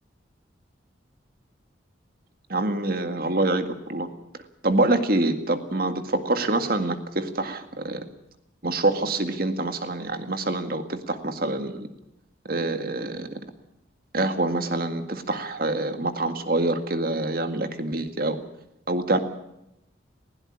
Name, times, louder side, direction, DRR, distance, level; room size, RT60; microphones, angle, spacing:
voice 1, 2.5-4.1 4.6-8.0 8.6-11.9 12.5-13.3 14.1-18.4 18.9-19.2, right 2 dB, 50° right, 8 dB, 1.9 m, -26 dB
20.0 x 16.5 x 8.8 m, 0.86 s
head